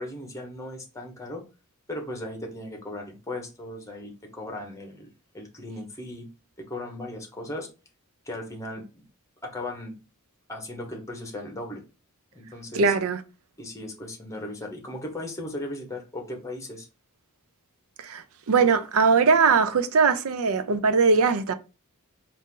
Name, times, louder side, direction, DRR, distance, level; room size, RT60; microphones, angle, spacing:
voice 1, 0.0-1.4 1.9-5.1 5.3-6.3 6.6-7.7 8.2-9.0 9.4-10.0 10.5-11.8 12.3-12.9 13.6-16.9, left 1 dB, 15° left, 1.0 m, -37 dB
voice 2, 12.7-13.2 18.0-21.5, right 5 dB, 65° right, 0.5 m, -21 dB
4.2 x 2.6 x 3.7 m
head